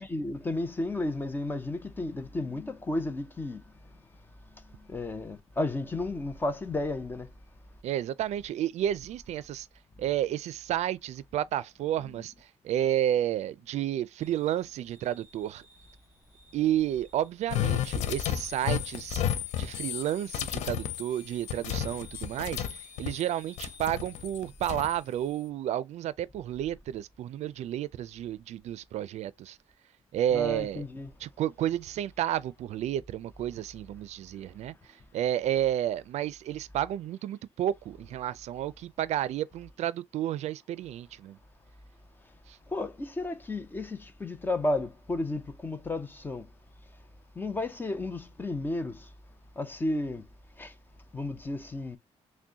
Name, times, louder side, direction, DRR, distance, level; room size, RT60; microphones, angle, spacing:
voice 1, 0.0-3.6 4.9-7.3 30.3-31.1 42.7-46.5 47.4-49.1 49.6-50.2 50.6-50.7 51.1-52.0, left 2 dB, 15° left, 0.6 m, -33 dB
voice 2, 7.8-9.7 10.0-15.7 16.5-19.2 19.6-29.6 30.1-30.8 31.2-41.4 42.5-42.6, right 11 dB, 70° right, 0.4 m, -31 dB
sound 1, 14.2-24.3, right 1 dB, 20° right, 3.0 m, -59 dB
sound 2, 17.5-23.3 23.6-25.0, left 10 dB, 85° left, 0.5 m, -32 dB
6.1 x 2.1 x 2.7 m
cardioid pair, 170°, 12 cm